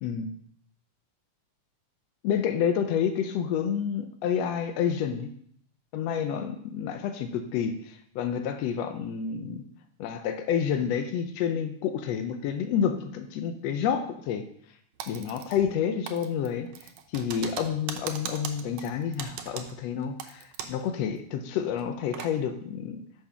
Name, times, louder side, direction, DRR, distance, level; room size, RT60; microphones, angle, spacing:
voice 1, 0.0-0.3 2.2-5.3 5.9-9.6 10.0-14.5 15.1-16.7 17.1-23.0, left 8 dB, 90° left, 7 dB, 1.5 m, -29 dB
Typing, 15.0-15.8 16.1-20.9 21.2-21.3 21.7-22.3, right 8 dB, 75° right, 2.1 m, -39 dB
6.1 x 6.0 x 5.6 m, 0.64 s
omnidirectional pair, 3.7 m